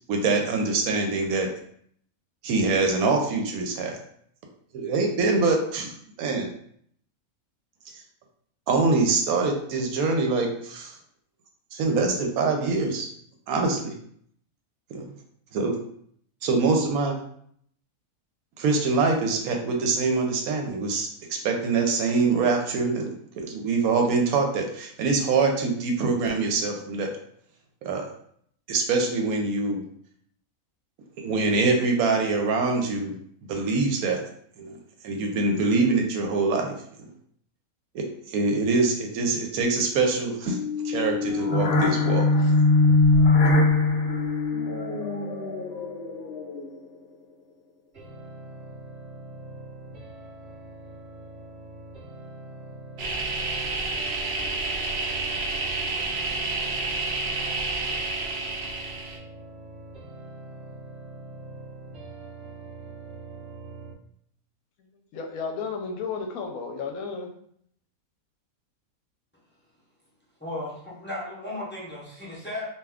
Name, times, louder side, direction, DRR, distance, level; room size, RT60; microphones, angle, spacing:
voice 1, 0.1-1.5 2.4-4.0 4.7-5.9 6.2-6.5 8.7-10.9 11.7-13.1 13.5-13.9 14.9-15.1 15.5-15.8 16.4-17.2 18.6-27.1 27.8-28.0 28.7-29.8 31.2-33.1 33.5-34.2 34.6-34.8 35.0-36.8 37.9-40.6 40.8-42.6 42.9-43.0, right 3 dB, 80° right, 1.0 m, -24 dB
sound 1, 40.5-46.9, left 3 dB, 55° left, 0.7 m, -22 dB
sound 2, 47.9-63.9, right 2 dB, 40° right, 0.9 m, -43 dB
sound 3, 53.0-59.2, right 3 dB, 65° right, 0.6 m, -29 dB
voice 2, 65.1-67.3, left 5 dB, 75° left, 1.0 m, -33 dB
voice 3, 70.4-72.7, left 1 dB, 10° left, 0.6 m, -35 dB
2.6 x 2.3 x 3.4 m
omnidirectional pair, 1.5 m